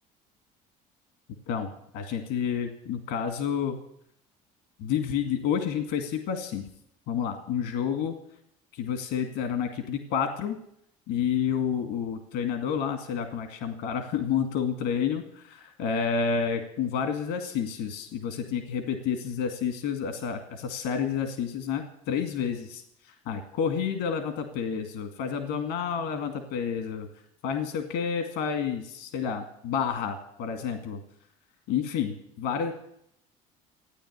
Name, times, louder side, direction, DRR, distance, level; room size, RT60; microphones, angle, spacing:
voice 1, 1.5-3.8 4.8-6.7 7.1-8.2 8.7-10.6 11.1-27.1 27.4-31.0 31.7-32.7, left 7 dB, 75° left, 7 dB, 2.3 m, -30 dB
14.5 x 9.8 x 9.6 m, 0.72 s
supercardioid pair, 80°, 17 cm